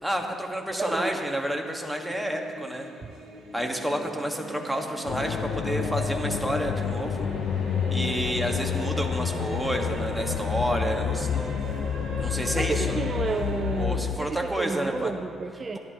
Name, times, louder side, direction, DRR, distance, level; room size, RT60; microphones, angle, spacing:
voice 1, 0.0-2.9 3.5-7.3 7.9-11.5 12.2-13.0 13.8-15.1, right 1 dB, 5° right, 1 dB, 1.4 m, -30 dB
voice 2, 0.7-1.2 3.0-3.1 12.5-15.8, right 4 dB, 40° right, 5 dB, 0.5 m, -31 dB
sound 1, 1.4-13.9, right 2 dB, 75° right, 2.1 m, -39 dB
sound 2, 5.1-14.2, left 8 dB, 65° left, 0.3 m, -29 dB
16.5 x 11.0 x 2.9 m, 2.8 s
cardioid pair, 90°, 0 cm